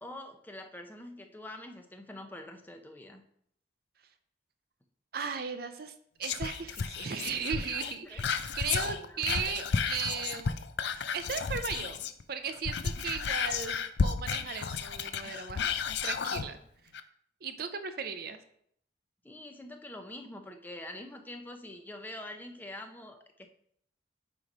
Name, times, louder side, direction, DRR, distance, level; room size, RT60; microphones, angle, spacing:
voice 1, 0.0-3.2 8.0-8.5 8.8-9.6 19.2-23.5, left 1 dB, 10° left, 5 dB, 0.6 m, -45 dB
voice 2, 5.1-8.3 8.5-10.6 11.1-15.6 16.0-16.6 17.4-18.4, right 6 dB, 60° right, 9 dB, 0.6 m, -36 dB
Whispering, 6.2-12.2 12.5-16.5 16.9-17.0, left 6 dB, 70° left, 0.5 m, -33 dB
8.8 x 3.2 x 5.3 m, 0.68 s
head